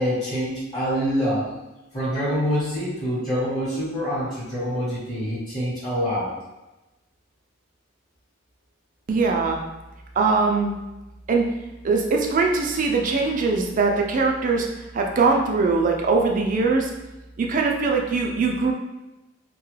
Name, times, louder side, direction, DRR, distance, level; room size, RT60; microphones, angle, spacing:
voice 1, 0.0-1.5 1.9-6.3, equal, 25° left, -11 dB, 1.1 m, -25 dB
voice 2, 9.1-9.6 10.2-10.8 11.3-11.5 11.8-14.7 14.9-16.9 17.4-18.7, right 4 dB, 45° right, 1 dB, 0.4 m, -21 dB
2.8 x 2.3 x 3.1 m, 1.0 s
head